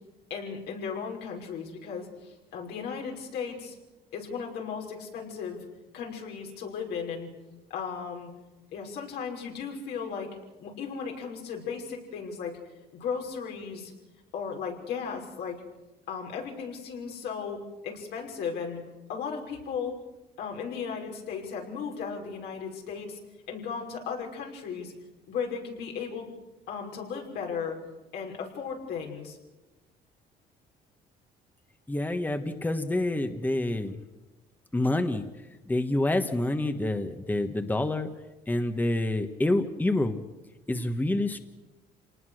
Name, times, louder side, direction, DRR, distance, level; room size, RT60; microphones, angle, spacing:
voice 1, 0.3-3.8 4.1-5.6 5.9-7.3 7.7-8.3 8.7-10.3 10.6-12.6 12.9-13.9 14.3-15.6 16.1-18.8 19.1-19.9 20.4-23.2 23.5-24.9 25.3-26.3 26.7-27.8 28.1-29.4, left 6 dB, 80° left, 0 dB, 5.8 m, -36 dB
voice 2, 31.9-34.0 34.7-35.2 35.7-38.1 38.5-40.2 40.7-41.4, left 1 dB, 10° left, 8 dB, 1.4 m, -27 dB
27.0 x 19.5 x 6.5 m, 1.1 s
cardioid pair, 110°, 17 cm